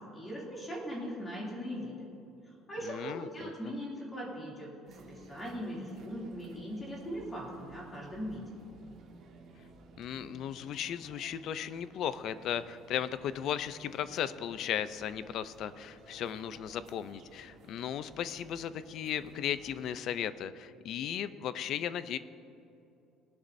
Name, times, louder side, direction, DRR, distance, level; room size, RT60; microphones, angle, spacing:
voice 1, 0.1-2.1 2.5-8.5, equal, 15° left, -4 dB, 2.7 m, -40 dB
voice 2, 2.8-3.5 10.0-22.2, left 9 dB, 45° left, 14 dB, 0.4 m, -36 dB
sound 1, 4.9-19.9, right 2 dB, 45° right, 1.6 m, -55 dB
19.0 x 11.5 x 2.6 m, 2.8 s
cardioid pair, 180°, 0 cm